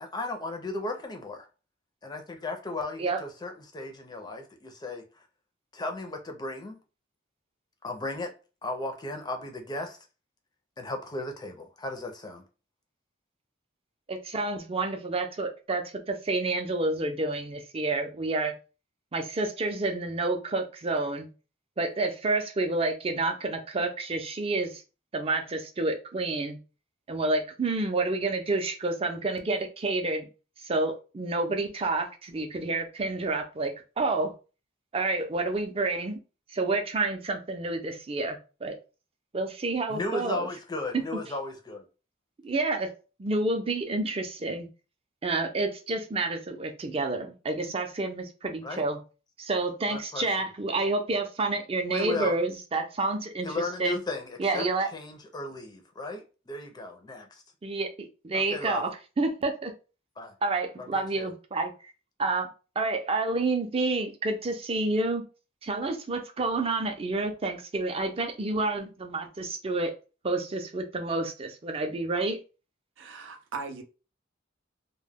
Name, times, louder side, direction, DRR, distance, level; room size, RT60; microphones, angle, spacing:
voice 1, 0.0-1.5 2.0-5.2 5.7-6.8 7.8-8.3 8.6-10.0 10.8-12.4 39.9-41.9 48.6-48.8 49.9-50.3 51.9-52.4 53.4-54.7 54.9-57.4 58.3-58.8 60.2-60.3 60.8-61.3, left 2 dB, 20° left, 0.5 m, -35 dB
voice 2, 14.1-18.6 19.1-21.3 21.8-24.8 25.1-26.6 27.1-30.3 30.6-34.3 34.9-36.2 36.5-38.7 39.3-40.5 41.1-41.2 42.4-42.9 43.2-44.7 45.2-49.0 49.4-53.5 53.8-54.0 54.4-54.9 57.6-58.9 59.2-59.7 60.4-61.9 62.2-62.5 62.8-65.3 65.6-69.9 70.2-72.4, right 3 dB, 30° right, 0.5 m, -29 dB
voice 3, 73.0-73.8, right 4 dB, 85° right, 0.5 m, -38 dB
2.2 x 2.1 x 3.3 m
head